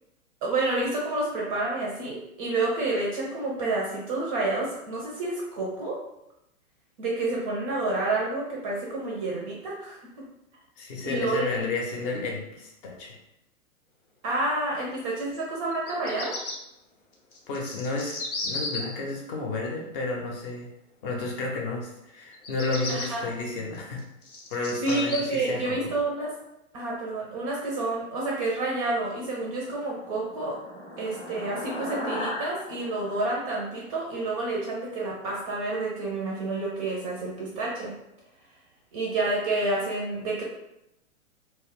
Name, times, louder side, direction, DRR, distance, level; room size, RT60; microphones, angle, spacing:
voice 1, 0.4-6.0 7.0-10.0 11.0-11.5 14.2-16.4 22.9-23.2 24.8-26.3 26.7-30.6 31.0-37.9 38.9-40.4, right 2 dB, 25° right, -3 dB, 0.4 m, -29 dB
voice 2, 10.8-13.2 17.5-20.7 21.0-24.1 24.5-25.8, left 3 dB, 40° left, 0 dB, 0.7 m, -32 dB
Bird vocalization bird call bird song, 15.7-16.5 17.3-18.8 22.3-23.1 23.7-25.2, left 3 dB, 85° left, 0.8 m, -34 dB
sound 1, 29.5-34.3, left 1 dB, 15° left, 0.8 m, -37 dB
2.2 x 2.0 x 3.5 m, 0.86 s
hypercardioid pair, 120°, 42 cm